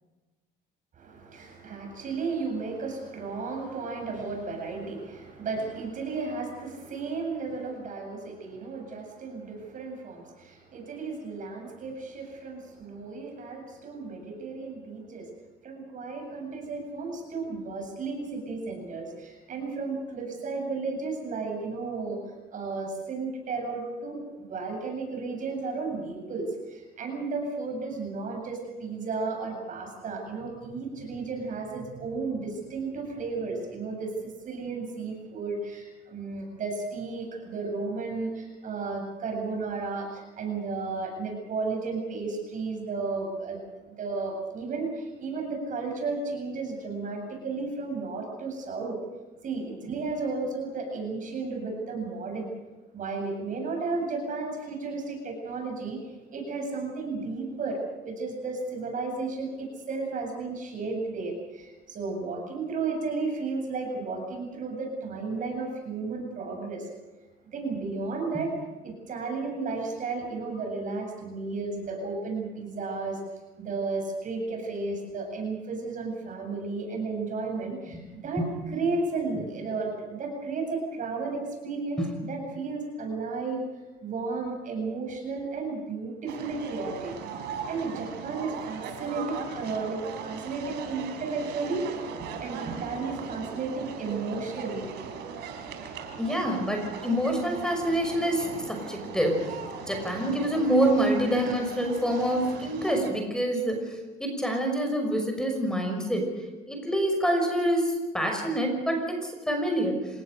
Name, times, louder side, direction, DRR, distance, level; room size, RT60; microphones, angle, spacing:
voice 1, 1.0-15.3 15.6-22.2 22.5-34.1 34.4-43.6 43.9-49.0 49.4-52.5 52.9-66.9 67.5-68.5 68.8-73.2 73.6-83.7 84.0-87.1 87.7-91.8 92.4-94.9, right 3 dB, 50° right, 3 dB, 8.0 m, -33 dB
sound 1, 86.3-103.1, right 6 dB, 85° right, 4.1 m, -39 dB
voice 2, 96.2-99.6 99.9-106.3 106.7-110.1, right 1 dB, 5° left, 3 dB, 5.9 m, -26 dB
27.5 x 19.0 x 6.6 m, 1.2 s
cardioid pair, 110°, 17 cm